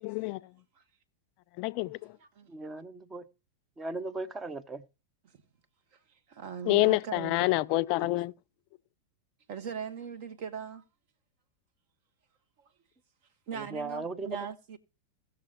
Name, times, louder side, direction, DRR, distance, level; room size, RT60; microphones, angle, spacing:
voice 1, 0.0-0.4 1.6-2.1 6.7-8.3, left 19 dB, 45° left, 0.4 m, -27 dB
voice 2, 2.5-3.3 3.8-4.8 13.5-14.4, right 3 dB, 15° right, 0.9 m, -37 dB
voice 3, 6.3-7.5 8.0-8.1 9.5-10.8 13.5-14.8, right 7 dB, 45° right, 1.5 m, -39 dB
18.0 x 6.8 x 3.0 m
figure-of-eight pair, 90°, 0 cm